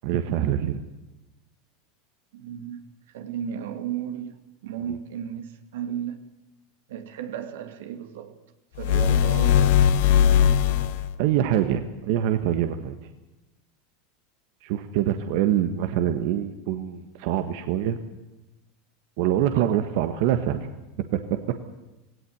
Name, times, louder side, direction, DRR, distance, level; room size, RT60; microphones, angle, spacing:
voice 1, 0.0-0.8 11.2-12.9 14.6-18.0 19.2-20.7 21.1-21.6, right 11 dB, 60° right, 1.5 m, -24 dB
voice 2, 2.3-6.2 6.9-8.4 8.8-11.0 19.5-19.8, right 9 dB, 85° right, 2.4 m, -35 dB
The Pulse, 8.8-11.2, left 9 dB, 65° left, 1.3 m, -19 dB
18.0 x 17.5 x 9.5 m
supercardioid pair, 150°, 0 cm